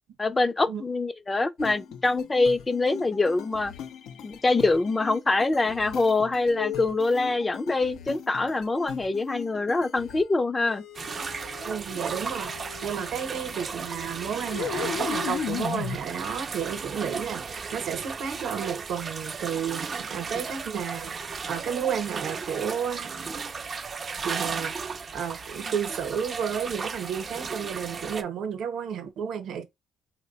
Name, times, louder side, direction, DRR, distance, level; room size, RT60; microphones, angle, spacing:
voice 1, 0.2-3.7 4.2-10.8, left 3 dB, 25° left, 0.4 m, -24 dB
sound 1, 1.6-10.3 10.7-16.0, left 9 dB, 85° left, 0.4 m, -38 dB
sound 2, 10.9-28.2, right 5 dB, 40° right, 0.4 m, -35 dB
voice 2, 11.6-23.2 24.2-24.8 25.1-29.6, right 7 dB, 75° right, 0.8 m, -32 dB
3.2 x 2.1 x 3.9 m
cardioid pair, 90°, 0 cm